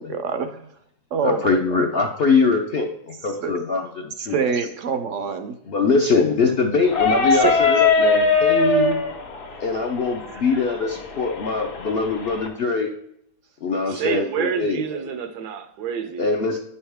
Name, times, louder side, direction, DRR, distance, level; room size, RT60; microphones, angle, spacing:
voice 1, 0.1-0.6 1.1-1.6 3.4-3.6 4.2-5.5 7.3-7.5 10.3-10.6, right 6 dB, 65° right, 0.8 m, -26 dB
voice 2, 1.2-4.4 5.7-9.0 9.6-12.9 13.6-14.8 16.2-16.6, left 4 dB, 60° left, 0.6 m, -22 dB
sound 1, 6.8-12.5, left 4 dB, 80° left, 1.8 m, -21 dB
voice 3, 13.9-16.3, right 7 dB, 85° right, 1.3 m, -28 dB
9.5 x 5.6 x 3.4 m
omnidirectional pair, 1.7 m